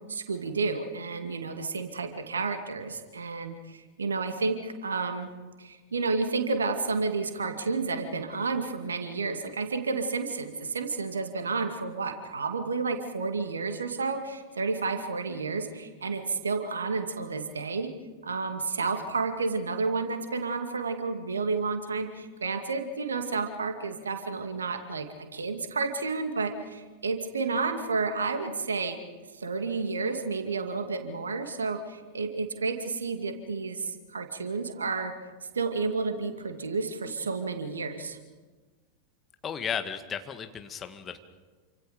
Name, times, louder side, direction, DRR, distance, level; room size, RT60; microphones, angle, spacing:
voice 1, 0.1-5.3 5.6-17.9 18.2-29.0 29.3-35.2 35.5-38.2, right 4 dB, 70° right, 7 dB, 2.3 m, -31 dB
voice 2, 39.4-41.2, left 7 dB, 25° left, 8 dB, 1.8 m, -34 dB
28.5 x 26.0 x 5.2 m, 1.3 s
figure-of-eight pair, 90°, 0 cm